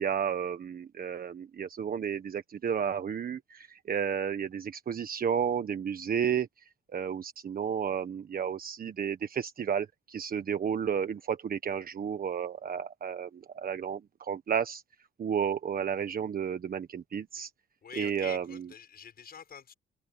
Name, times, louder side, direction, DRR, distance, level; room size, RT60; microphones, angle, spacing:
voice 1, 0.0-6.5 6.9-14.8 15.2-17.5 18.0-18.6, right 7 dB, 45° right, 1.4 m, -32 dB
voice 2, 17.8-19.7, left 7 dB, 50° left, 6.6 m, -46 dB
cardioid pair, 90°, 20 cm